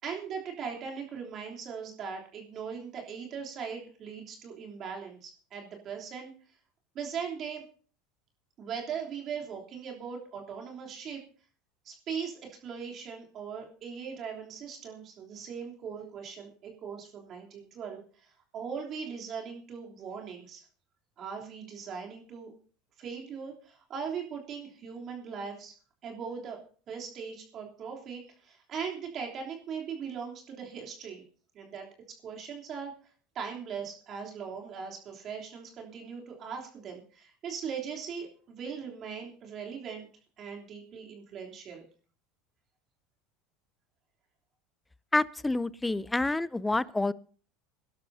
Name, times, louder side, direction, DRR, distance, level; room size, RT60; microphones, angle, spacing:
voice 1, 0.0-6.3 6.9-7.6 8.6-11.2 11.8-20.6 21.2-22.5 23.0-25.7 26.0-26.6 26.9-31.2 31.5-32.9 33.3-40.1 40.4-41.8, right 6 dB, 45° right, 0 dB, 3.3 m, -39 dB
voice 2, 45.1-47.1, left 2 dB, 10° left, 19 dB, 0.5 m, -28 dB
22.5 x 12.0 x 2.8 m, 0.43 s
hypercardioid pair, 95°, 0 cm